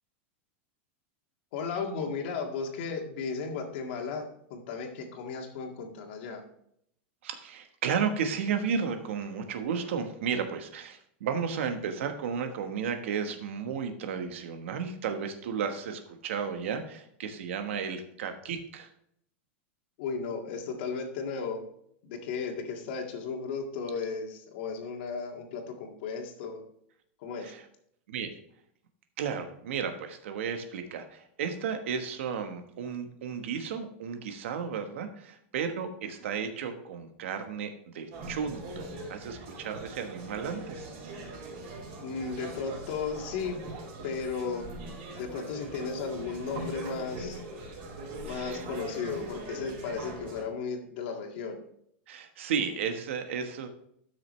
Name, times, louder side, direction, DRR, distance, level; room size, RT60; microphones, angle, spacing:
voice 1, 1.5-6.4 20.0-21.6 22.0-26.6 27.2-27.5 42.0-43.6 44.0-44.8 45.1-47.4 48.2-51.6, left 5 dB, 55° left, 3 dB, 1.9 m, -35 dB
voice 2, 7.2-18.9 27.4-27.6 28.1-28.3 29.2-40.9 48.2-48.6 52.1-53.7, right 6 dB, 75° right, 7 dB, 1.3 m, -33 dB
sound 1, 38.1-50.4, right 2 dB, 50° right, 4.3 m, -41 dB
13.0 x 6.4 x 3.2 m, 0.71 s
supercardioid pair, 160°, 7 cm